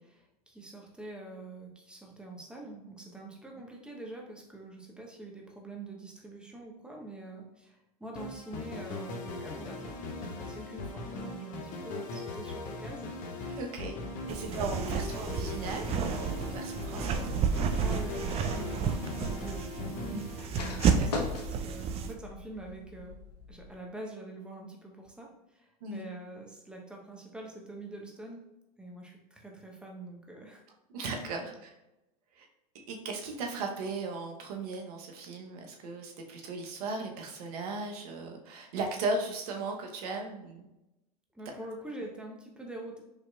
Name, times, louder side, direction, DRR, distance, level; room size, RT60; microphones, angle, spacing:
voice 1, 0.5-13.1 14.3-15.1 17.8-20.3 20.6-23.2 23.5-28.4 28.8-30.6 31.3-31.5 41.3-43.0, right 2 dB, 5° right, 0 dB, 0.8 m, -45 dB
sound 1, 8.1-21.1, left 3 dB, 40° left, 0.9 m, -40 dB
voice 2, 13.5-14.0 14.3-17.3 20.1-20.3 20.9-21.1 25.8-26.0 30.9-31.7 32.3-32.5 32.9-40.7, right 3 dB, 70° right, 2 dB, 0.9 m, -37 dB
sound 2, 14.3-22.1, right 6 dB, 30° right, 0.4 m, -31 dB
sound 3, 16.6-23.7, left 3 dB, 90° left, 0.8 m, -42 dB
4.9 x 2.9 x 2.3 m, 0.94 s
hypercardioid pair, 100°, 20 cm